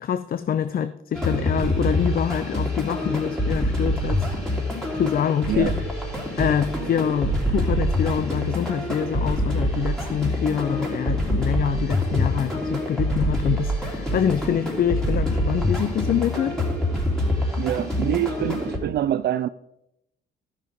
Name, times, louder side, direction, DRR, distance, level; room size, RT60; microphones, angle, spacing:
voice 1, 0.0-4.4 4.9-5.8 6.4-16.6, left 9 dB, 50° left, 13 dB, 0.5 m, -25 dB
sound 1, 1.1-18.8, left 1 dB, ahead, 3.2 m, -25 dB
voice 2, 17.6-19.5, right 12 dB, 55° right, 12 dB, 0.4 m, -25 dB
12.0 x 6.1 x 5.2 m, 0.82 s
cardioid pair, 90°, 20 cm